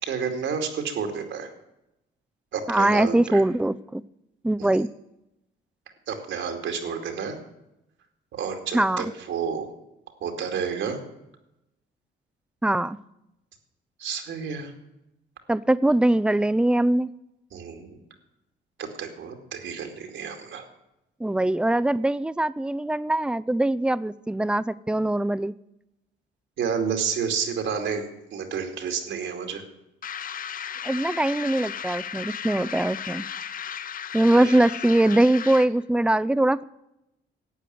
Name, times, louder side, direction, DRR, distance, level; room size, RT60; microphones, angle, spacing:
voice 1, 0.0-1.5 2.5-3.4 4.6-4.7 6.1-7.4 8.3-9.7 10.2-11.0 14.0-14.7 17.5-18.0 18.8-20.6 26.6-28.1 28.3-29.6 34.3-34.6, right 6 dB, 75° right, 5 dB, 2.5 m, -30 dB
voice 2, 2.7-4.0 4.4-4.9 8.7-9.1 12.6-13.0 15.5-17.1 21.2-25.5 30.8-33.3 34.1-36.6, right 1 dB, 5° right, 18 dB, 0.5 m, -22 dB
sound 1, 30.0-35.8, left 8 dB, 45° left, 0.6 m, -35 dB
12.0 x 8.6 x 9.3 m, 0.89 s
cardioid pair, 90°, 20 cm